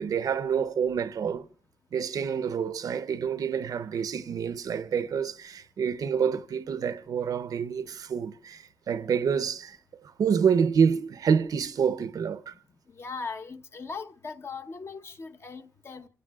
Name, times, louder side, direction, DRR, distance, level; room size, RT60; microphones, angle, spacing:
voice 1, 0.0-1.4 1.9-9.8 10.2-12.5, right 7 dB, 90° right, 0.8 m, -27 dB
voice 2, 13.0-16.1, left 4 dB, 45° left, 1.0 m, -39 dB
29.0 x 17.0 x 2.4 m
wide cardioid pair, 170°, 6 cm